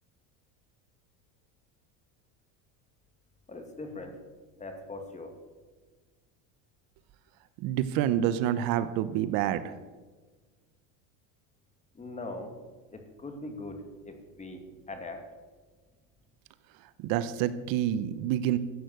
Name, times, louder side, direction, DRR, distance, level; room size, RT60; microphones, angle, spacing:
voice 1, 3.5-4.2 4.6-5.3 11.9-12.5 12.9-14.6 14.9-15.2, left 2 dB, 20° left, 6 dB, 2.3 m, -41 dB
voice 2, 7.6-9.7 17.0-18.6, right 11 dB, 60° right, 13 dB, 0.9 m, -28 dB
14.0 x 8.8 x 7.9 m, 1.4 s
supercardioid pair, 125°, 39 cm